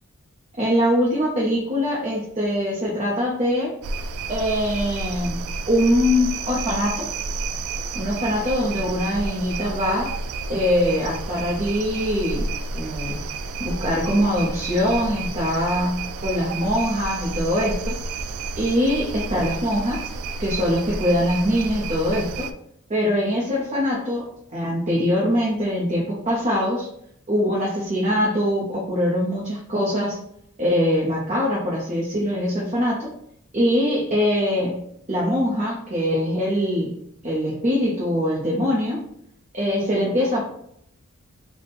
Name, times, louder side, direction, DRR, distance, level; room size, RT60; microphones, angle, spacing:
voice 1, 0.6-3.8 4.3-5.4 5.7-7.1 7.9-10.1 10.5-12.5 12.7-13.2 13.6-18.0 18.6-20.1 20.4-22.5 22.9-26.9 27.3-30.2 30.6-33.1 33.5-34.8 35.1-36.9 37.2-39.0 39.5-40.4, equal, 30° right, -5 dB, 0.6 m, -23 dB
sound 1, 3.8-22.5, right 3 dB, 80° right, 0.3 m, -31 dB
3.4 x 2.1 x 4.1 m, 0.72 s
head